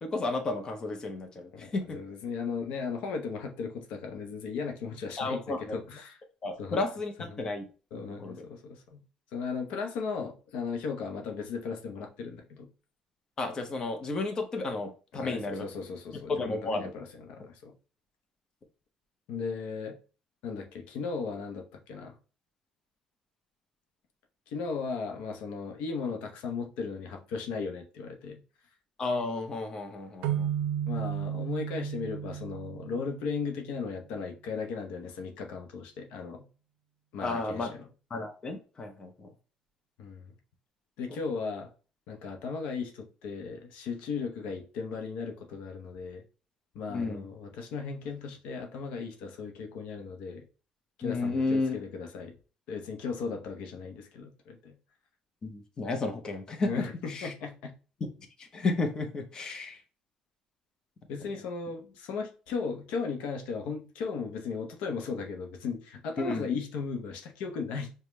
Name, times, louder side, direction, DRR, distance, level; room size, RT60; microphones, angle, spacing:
voice 1, 0.0-2.0 5.2-5.7 6.4-7.7 8.0-8.4 13.4-15.6 16.3-16.9 29.0-30.5 37.2-37.7 38.1-39.3 46.9-47.2 51.0-51.8 55.4-57.3 58.4-59.8 66.2-66.5, left 3 dB, 35° left, 0.7 m, -32 dB
voice 2, 1.5-5.4 5.7-6.2 6.6-6.8 7.3-7.4 7.9-9.0 9.3-12.7 15.1-17.7 19.3-20.0 20.4-22.2 24.5-28.4 30.9-36.5 37.1-37.9 40.0-40.4 41.0-41.7 42.1-46.2 46.7-50.5 51.0-52.3 52.7-54.8 56.6-57.7 61.1-67.9, left 5 dB, 80° left, 0.7 m, -36 dB
sound 1, 30.2-33.8, right 10 dB, 80° right, 0.4 m, -33 dB
5.0 x 2.2 x 3.0 m
cardioid pair, 115°, 2 cm